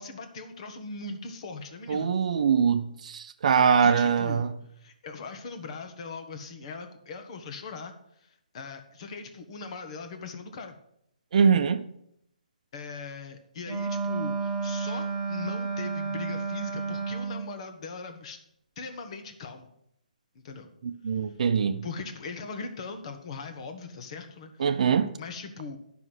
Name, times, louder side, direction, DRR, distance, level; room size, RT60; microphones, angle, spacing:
voice 1, 0.0-2.1 3.8-4.5 4.8-7.9 8.2-10.7 12.7-18.4 18.8-19.7 20.4-20.7 21.8-24.8 25.2-25.8, left 4 dB, 45° left, 1.4 m, -40 dB
voice 2, 1.9-4.5 11.3-11.8 20.8-21.9 24.6-25.1, right 6 dB, 55° right, 0.6 m, -23 dB
Wind instrument woodwind instrument, 13.6-17.5, right 4 dB, 20° right, 1.3 m, -31 dB
11.0 x 6.0 x 6.1 m
hypercardioid pair, 145°, 5 cm